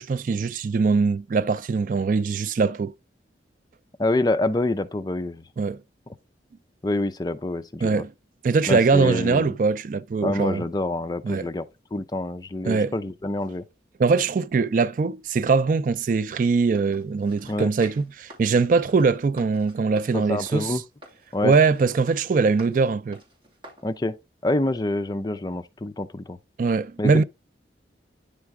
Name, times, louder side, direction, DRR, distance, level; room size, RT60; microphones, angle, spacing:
voice 1, 0.0-2.9 5.6-5.8 7.8-8.1 8.4-10.6 11.2-11.4 12.7-12.9 14.0-20.8 21.4-23.2 26.6-27.2, right 4 dB, 45° right, 0.3 m, -22 dB
voice 2, 4.0-5.4 6.8-8.0 8.7-9.5 10.2-11.6 11.9-13.6 17.5-17.7 20.1-20.8 21.3-21.5 23.8-24.2 24.4-26.4 27.0-27.2, left 2 dB, 20° left, 0.4 m, -26 dB
sound 1, 16.7-23.9 24.4-24.5, equal, 25° right, 3.2 m, -48 dB
9.7 x 3.4 x 4.7 m
head